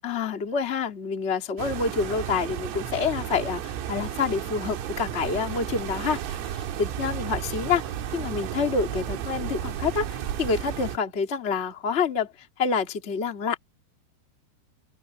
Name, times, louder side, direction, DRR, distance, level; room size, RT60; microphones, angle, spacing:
voice 1, 0.0-7.8 8.1-13.6, left 5 dB, 90° left, 0.6 m, -27 dB
sound 1, 1.6-11.0, right 10 dB, 85° right, 4.7 m, -33 dB
open air
omnidirectional pair, 5.9 m